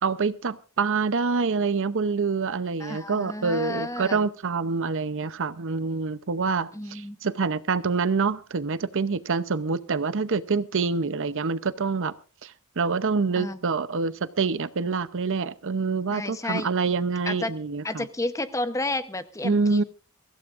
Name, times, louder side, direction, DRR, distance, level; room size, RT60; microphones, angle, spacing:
voice 1, 0.0-12.1 12.4-18.1 19.4-19.8, right 4 dB, 60° right, 15 dB, 0.7 m, -26 dB
voice 2, 2.8-4.2 6.7-7.2 13.3-13.6 16.1-16.7 17.3-17.5 17.8-19.8, left 2 dB, 15° left, 11 dB, 0.9 m, -31 dB
23.0 x 15.5 x 2.5 m, 0.35 s
head